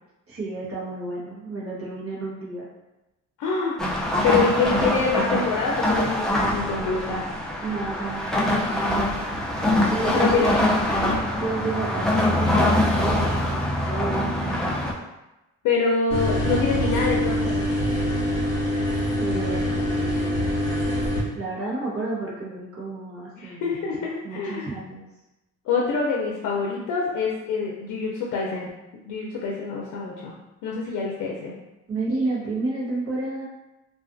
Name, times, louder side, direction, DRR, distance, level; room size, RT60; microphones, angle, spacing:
voice 1, 0.3-2.7 7.6-9.0 9.9-10.7 11.4-14.8 19.2-20.6 21.4-23.9 24.2-25.0 31.9-33.5, right 3 dB, 50° right, -5 dB, 1.0 m, -31 dB
voice 2, 3.4-3.8 4.2-7.3 10.1-10.5 15.6-17.6 23.4-24.7 25.7-28.7 29.0-30.3 30.6-31.5, left 4 dB, 80° left, -3 dB, 0.5 m, -25 dB
sound 1, 3.8-14.9, left 1 dB, ahead, 0.4 m, -23 dB
sound 2, 16.1-21.2, equal, 25° left, 1.2 m, -24 dB
2.4 x 2.3 x 2.5 m, 0.99 s
cardioid pair, 90°, 30 cm